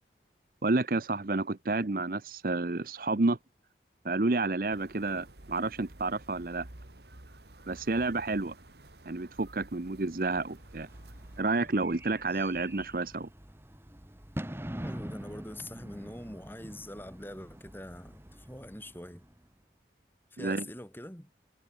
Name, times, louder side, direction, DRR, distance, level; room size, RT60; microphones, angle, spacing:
voice 1, 0.6-3.4 4.0-6.7 7.7-8.5 9.1-10.9 11.4-13.3 20.4-20.6, right 3 dB, 50° right, 0.8 m, -30 dB
sound 1, 4.7-11.4, right 1 dB, 65° right, 2.2 m, -51 dB
Bird / Fireworks, 10.4-19.5, equal, 15° right, 1.3 m, -45 dB
voice 2, 14.8-19.2 20.3-21.3, left 1 dB, 10° left, 6.5 m, -44 dB
head